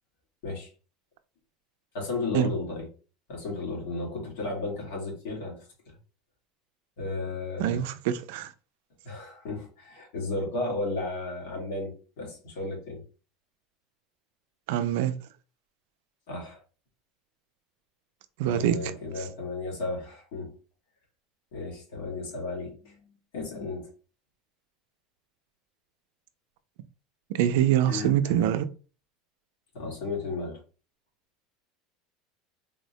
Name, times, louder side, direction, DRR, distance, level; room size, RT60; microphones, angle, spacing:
voice 1, 1.9-2.9 3.3-5.7 7.0-7.8 9.0-13.0 16.3-16.6 18.4-20.5 21.5-23.9 27.9-28.4 29.7-30.6, left 3 dB, 75° left, 1.4 m, -34 dB
voice 2, 7.6-8.5 14.7-15.2 18.4-18.9 27.3-28.7, right 11 dB, 75° right, 0.3 m, -24 dB
3.5 x 2.1 x 2.7 m
cardioid pair, 170°, 0 cm